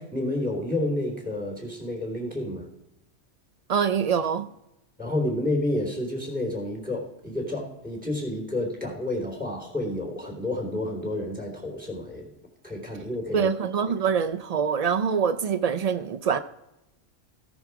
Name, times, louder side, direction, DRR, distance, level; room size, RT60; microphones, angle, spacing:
voice 1, 0.0-2.7 5.0-12.3 12.6-13.5, left 1 dB, 5° right, 3.4 m, -30 dB
voice 2, 3.7-4.5 13.3-16.4, right 7 dB, 75° right, 0.3 m, -24 dB
16.5 x 6.3 x 4.7 m
omnidirectional pair, 1.3 m